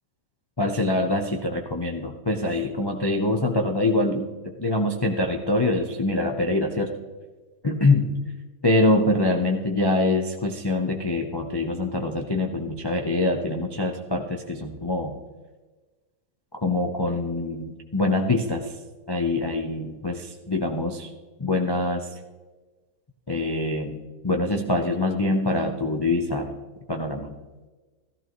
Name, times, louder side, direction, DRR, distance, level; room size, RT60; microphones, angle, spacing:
voice 1, 0.6-6.9 7.6-8.2 8.6-15.2 16.6-18.7 19.1-21.1 21.4-22.1 23.3-26.5 26.9-27.3, left 2 dB, 35° left, 2 dB, 0.4 m, -24 dB
14.5 x 13.5 x 3.1 m, 1.2 s
omnidirectional pair, 1.9 m